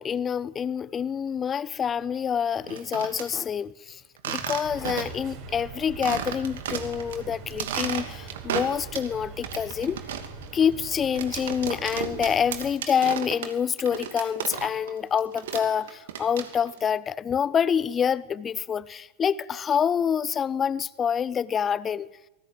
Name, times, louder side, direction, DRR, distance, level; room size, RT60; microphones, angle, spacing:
voice 1, 0.0-4.0 4.3-10.0 10.5-22.1, left 7 dB, 20° left, 0.8 m, -27 dB
sound 1, 2.6-3.3 4.2-5.3 5.6-5.7 6.0-7.2 7.5-9.1 9.4-14.9 15.2-16.8, right 9 dB, 60° right, 2.6 m, -34 dB
sound 2, 4.6-12.7, right 5 dB, 45° right, 6.6 m, -42 dB
26.0 x 19.5 x 9.0 m
figure-of-eight pair, 90°, 0 cm